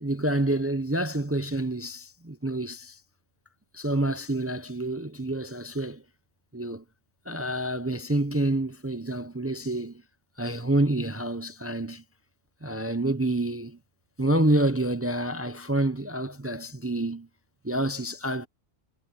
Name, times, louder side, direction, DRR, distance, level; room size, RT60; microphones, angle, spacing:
voice 1, 0.0-3.0 3.7-6.0 6.5-6.8 7.3-10.0 10.4-12.0 12.6-13.8 14.2-17.3 17.6-18.5, right 1 dB, 15° right, 0.6 m, -28 dB
omnidirectional pair, 1.2 m